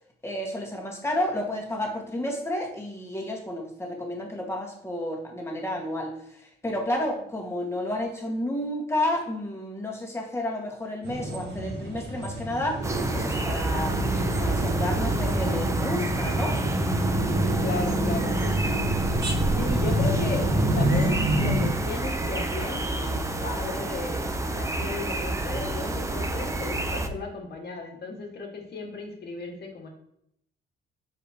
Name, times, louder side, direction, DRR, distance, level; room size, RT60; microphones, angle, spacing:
voice 1, 0.2-6.1 6.6-12.8 13.1-16.6, left 1 dB, 15° left, -1 dB, 1.8 m, -31 dB
sound 1, 11.0-21.7, right 1 dB, 60° right, 1.9 m, -27 dB
sound 2, 12.8-27.1, right 2 dB, 15° right, 0.7 m, -29 dB
voice 2, 17.6-18.6 19.5-29.9, left 3 dB, 55° left, 1 dB, 1.8 m, -35 dB
6.5 x 4.9 x 3.0 m, 0.73 s
cardioid pair, 90°, 20 cm